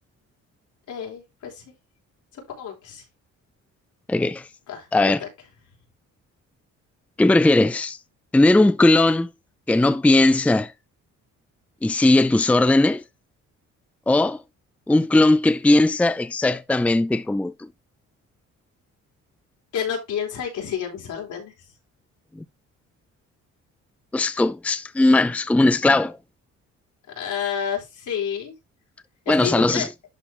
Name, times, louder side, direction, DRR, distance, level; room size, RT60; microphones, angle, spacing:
voice 1, 0.9-1.7 2.3-3.0 4.7-5.3 19.7-21.7 27.1-28.5 29.3-29.9, left 8 dB, 80° left, 4.2 m, -30 dB
voice 2, 4.1-4.5 4.9-5.2 7.2-8.0 8.3-9.3 9.7-10.7 11.8-13.0 14.1-14.4 14.9-17.7 22.4-22.5 24.1-26.2 29.3-29.9, left 2 dB, 5° left, 0.5 m, -18 dB
11.5 x 4.3 x 3.3 m
cardioid pair, 90°, 30 cm